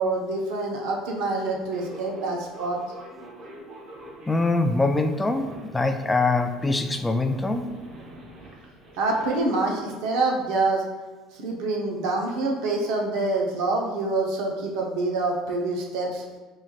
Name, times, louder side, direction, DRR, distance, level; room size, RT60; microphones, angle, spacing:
voice 1, 0.0-2.8 9.0-10.8 11.3-16.2, right 2 dB, 75° right, 0 dB, 0.7 m, -26 dB
sound 1, 1.5-9.4, right 1 dB, 45° right, 0.9 m, -45 dB
voice 2, 4.3-7.7, left 2 dB, 10° left, 6 dB, 0.3 m, -23 dB
5.2 x 3.1 x 2.3 m, 1.3 s
cardioid pair, 135°, 0 cm